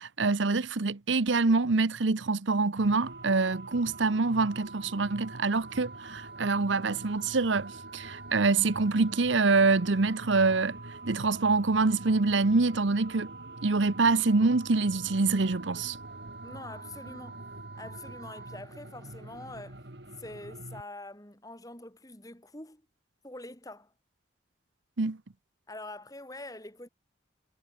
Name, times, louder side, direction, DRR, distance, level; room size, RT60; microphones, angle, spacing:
voice 1, 0.0-10.8 11.1-13.3 13.6-16.0 25.0-25.2, right 3 dB, 75° right, 0.9 m, -25 dB
sound 1, 2.8-18.6, right 4 dB, 45° right, 4.4 m, -47 dB
sound 2, 2.8-20.8, right 1 dB, 60° right, 2.8 m, -46 dB
voice 2, 16.4-17.4 17.8-19.8 20.2-22.8 23.2-23.9 25.7-26.9, left 2 dB, 20° left, 3.5 m, -45 dB
head